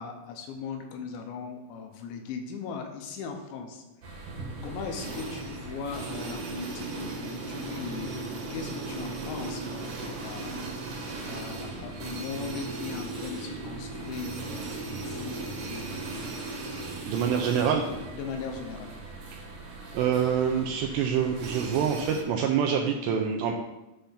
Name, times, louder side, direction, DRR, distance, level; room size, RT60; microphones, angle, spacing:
voice 1, 0.0-3.8 4.1-4.3 4.6-15.9 18.1-18.9, left 5 dB, 80° left, 4 dB, 2.9 m, -39 dB
sound 1, 4.0-22.2, right 2 dB, 65° right, 2.1 m, -37 dB
voice 2, 17.1-17.8 19.9-23.5, right 7 dB, 85° right, 3 dB, 2.5 m, -26 dB
10.5 x 3.4 x 5.6 m, 1.0 s
omnidirectional pair, 5.5 m